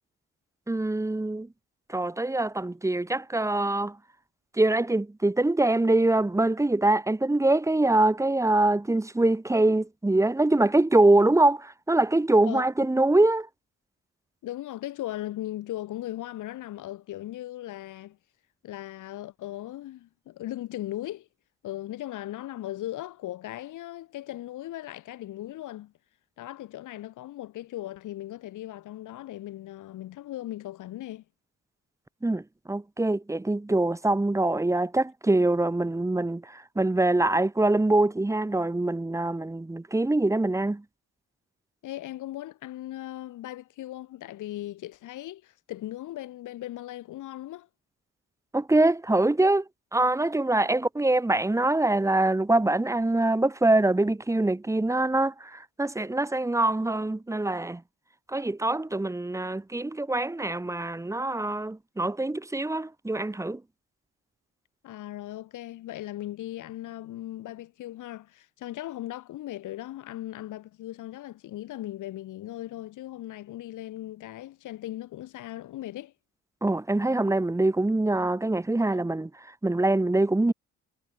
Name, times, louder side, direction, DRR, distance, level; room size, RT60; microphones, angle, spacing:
voice 1, 0.7-1.5 1.9-4.0 4.5-13.5 32.2-40.8 48.5-49.6 49.9-57.8 58.3-63.6 76.6-79.3 79.6-80.5, right 2 dB, 10° right, 1.0 m, -24 dB
voice 2, 14.4-18.2 18.6-21.3 21.6-25.9 26.4-31.2 41.8-47.7 64.8-76.1, left 14 dB, 80° left, 3.1 m, -38 dB
cardioid pair, 90°, 30 cm